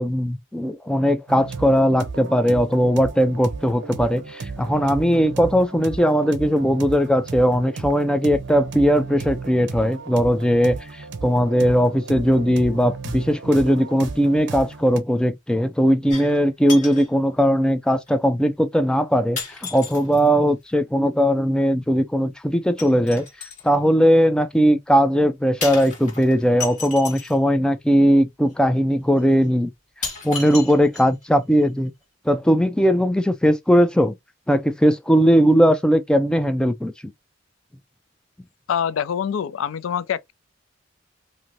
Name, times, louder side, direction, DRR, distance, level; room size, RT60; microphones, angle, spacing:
voice 1, 0.0-23.3 23.6-29.7 30.2-31.9 32.3-34.2 34.5-36.9, equal, 5° left, 0.3 m, -19 dB
sound 1, 1.3-15.0, right 4 dB, 60° right, 0.6 m, -34 dB
sound 2, 16.1-16.4 16.7-17.1 18.1-18.2 19.4-20.3 22.8-23.7 25.6-27.4 28.5-28.6 29.2-29.3 30.0-31.3 31.6-31.7, left 4 dB, 40° left, 1.6 m, -33 dB
voice 2, 38.7-40.3, left 8 dB, 90° left, 0.3 m, -25 dB
2.6 x 2.6 x 3.0 m
head